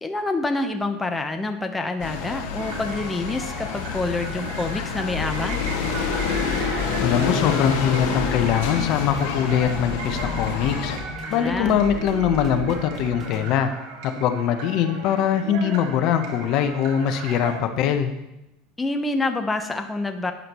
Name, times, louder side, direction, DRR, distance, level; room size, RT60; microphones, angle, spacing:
voice 1, 0.0-5.6 11.2-11.8 18.8-20.3, left 2 dB, 15° left, 6 dB, 0.9 m, -27 dB
sound 1, 2.0-11.0, left 6 dB, 75° left, 1.6 m, -28 dB
sound 2, 2.5-17.6, right 4 dB, 65° right, 2.3 m, -36 dB
sound 3, 5.4-13.5, left 1 dB, 20° right, 3.8 m, -36 dB
voice 2, 7.0-10.9 11.3-13.7 14.0-18.1, left 9 dB, 55° left, 8 dB, 0.9 m, -22 dB
12.0 x 9.8 x 3.1 m, 0.94 s
supercardioid pair, 115°, 0 cm